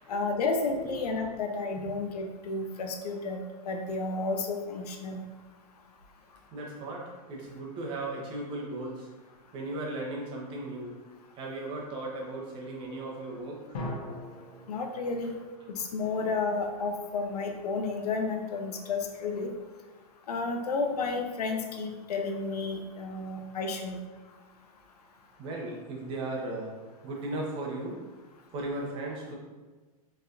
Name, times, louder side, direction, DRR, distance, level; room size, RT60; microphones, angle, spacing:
voice 1, 0.1-5.2 14.7-15.4 15.7-19.5 20.3-24.0, left 3 dB, 90° left, 4 dB, 0.7 m, -32 dB
voice 2, 6.5-9.1 9.5-10.9 11.4-13.9 25.4-26.8 27.0-28.0 28.5-29.3, right 2 dB, 25° right, -1 dB, 0.9 m, -36 dB
sound 1, 13.7-16.5, left 1 dB, 60° left, 1.2 m, -41 dB
4.6 x 3.3 x 2.6 m, 1.3 s
supercardioid pair, 150°, 19 cm